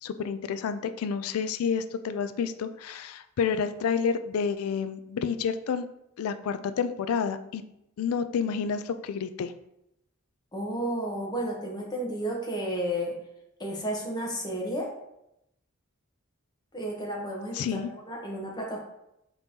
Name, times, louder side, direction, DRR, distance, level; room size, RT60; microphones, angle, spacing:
voice 1, 0.0-5.9 6.2-7.6 8.0-9.5 17.5-17.9, left 6 dB, 85° left, 10 dB, 0.3 m, -29 dB
voice 2, 10.5-13.1 13.6-14.9 16.7-18.8, right 1 dB, 20° left, -2 dB, 0.9 m, -32 dB
5.1 x 3.0 x 2.8 m, 0.83 s
head